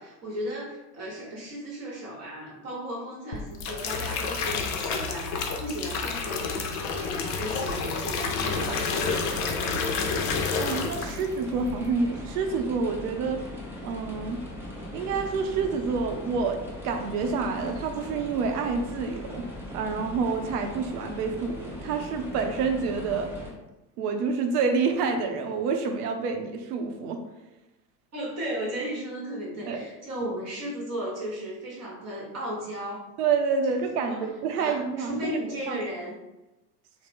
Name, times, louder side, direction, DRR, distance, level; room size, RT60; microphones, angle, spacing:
voice 1, 0.0-10.2 28.1-33.1 34.0-34.3 34.5-36.2, equal, 30° right, -3 dB, 1.0 m, -35 dB
sound 1, 3.3-11.3 11.6-12.0, left 5 dB, 45° left, 0.5 m, -30 dB
sound 2, 8.3-23.5, left 1 dB, 5° right, 0.6 m, -40 dB
voice 2, 10.6-13.4 13.8-14.4 14.9-19.4 19.7-23.3 24.0-27.2 29.7-29.9 33.2-35.4 35.7-35.8, right 5 dB, 65° right, 5 dB, 0.7 m, -28 dB
3.3 x 2.0 x 3.4 m, 1.0 s
figure-of-eight pair, 75°, 50 cm